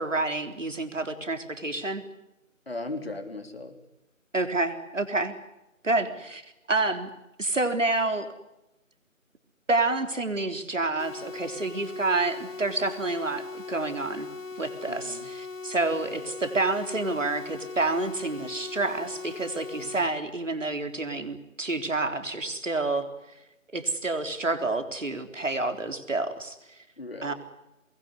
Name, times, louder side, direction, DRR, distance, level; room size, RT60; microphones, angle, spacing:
voice 1, 0.0-2.0 4.3-5.3 5.8-6.4 6.7-7.1 7.4-8.3 9.7-14.3 14.6-23.1 23.7-26.6 27.2-27.3, right 2 dB, 65° right, 7 dB, 3.9 m, -28 dB
voice 2, 2.7-3.8 14.9-15.3 15.9-16.0 19.8-19.9 27.0-27.3, left 2 dB, 45° left, 7 dB, 3.7 m, -37 dB
sound 1, 11.0-20.0, left 4 dB, 70° left, 1.6 m, -39 dB
24.5 x 21.0 x 9.8 m, 0.93 s
figure-of-eight pair, 175°, 40 cm